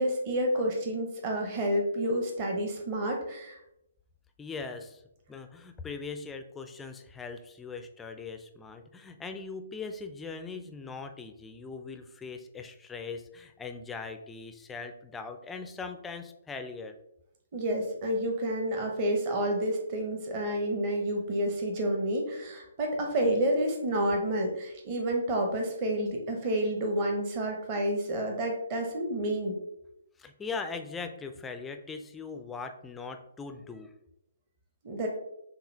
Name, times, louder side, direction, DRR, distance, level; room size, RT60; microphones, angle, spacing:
voice 1, 0.0-3.6 17.5-29.6 34.8-35.1, right 1 dB, 30° right, 2 dB, 0.8 m, -29 dB
voice 2, 4.4-5.0 5.3-17.0 30.2-33.9, left 4 dB, 10° left, 7 dB, 0.4 m, -40 dB
6.6 x 2.3 x 3.2 m, 0.82 s
figure-of-eight pair, 130°, 0 cm